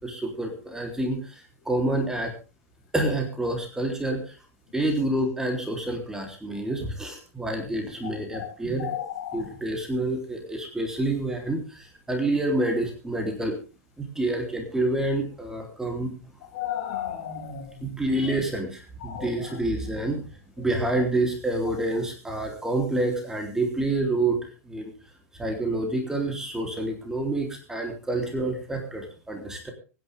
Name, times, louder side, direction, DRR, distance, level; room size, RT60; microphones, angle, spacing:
voice 1, 0.0-2.3 2.9-4.4 4.7-8.9 9.3-13.6 14.0-16.1 17.8-20.3 20.6-24.9 25.4-29.7, right 2 dB, 5° right, 3 dB, 3.6 m, -28 dB
voice 2, 8.3-9.5 16.5-17.9 19.0-19.3, left 9 dB, 50° left, 2 dB, 6.9 m, -34 dB
24.0 x 10.5 x 3.7 m, 0.34 s
figure-of-eight pair, 95°, 8 cm